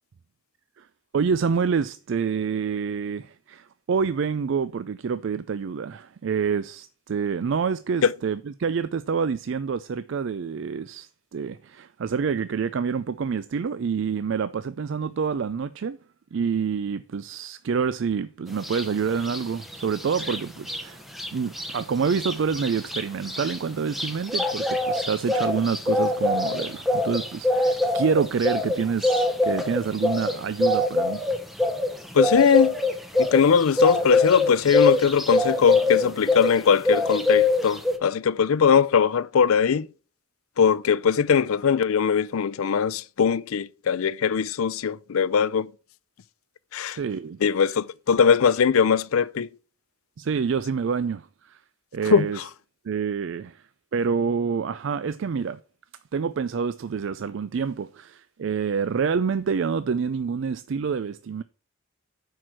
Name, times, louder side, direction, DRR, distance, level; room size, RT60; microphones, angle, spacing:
voice 1, 1.1-16.0 16.3-21.0 21.3-31.3 46.9-47.4 47.7-47.8 50.2-51.6 51.9-52.4 52.8-53.6 53.9-55.6 56.1-61.4, right 6 dB, 60° right, 0.4 m, -27 dB
sound 1, 18.6-18.9 19.2-20.8 21.1-21.3 21.5-36.6 36.8-38.0, left 2 dB, ahead, 0.9 m, -24 dB
voice 2, 32.1-32.8 33.2-39.9 40.6-45.7 46.7-47.0 47.4-49.5 52.1-52.4, left 6 dB, 80° left, 0.4 m, -21 dB
10.0 x 4.7 x 6.1 m
head